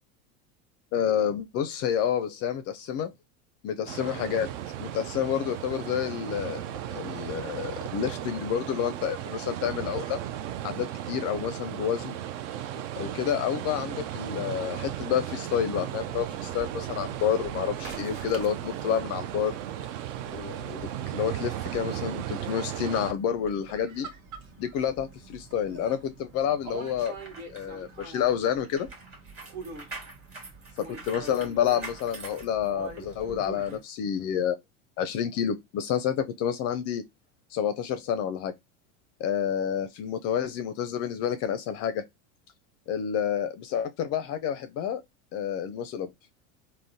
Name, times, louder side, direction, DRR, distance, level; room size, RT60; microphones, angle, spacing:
voice 1, 0.9-3.1 3.6-4.5 4.8-6.6 6.9-10.2 10.6-12.2 13.0-19.5 20.3-24.1 24.6-27.2 27.5-28.9 30.8-34.6 35.0-37.0 37.5-38.5 39.2-42.0 42.9-45.0 45.3-46.1, left 9 dB, 40° left, 0.4 m, -29 dB
sound 1, 3.9-23.1, right 11 dB, 60° right, 0.5 m, -36 dB
sound 2, 15.9-33.8, right 4 dB, 80° right, 1.0 m, -46 dB
sound 3, 26.9-33.1 33.6-33.8, right 2 dB, 30° right, 1.3 m, -45 dB
3.6 x 2.1 x 2.6 m
hypercardioid pair, 90°, 42 cm